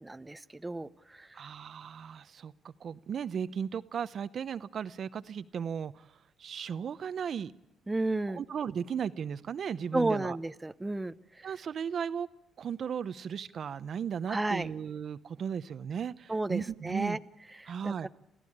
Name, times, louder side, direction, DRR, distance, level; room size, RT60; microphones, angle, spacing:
voice 1, 0.0-1.4 7.9-8.4 9.9-11.5 14.3-14.7 16.3-17.2 17.6-18.1, right 2 dB, 15° right, 12 dB, 0.7 m, -32 dB
voice 2, 1.3-7.5 8.3-10.4 11.4-12.3 12.6-17.2 17.7-18.1, right 7 dB, 55° right, 14 dB, 0.7 m, -36 dB
28.0 x 15.0 x 8.7 m, 0.92 s
cardioid pair, 90°, 0 cm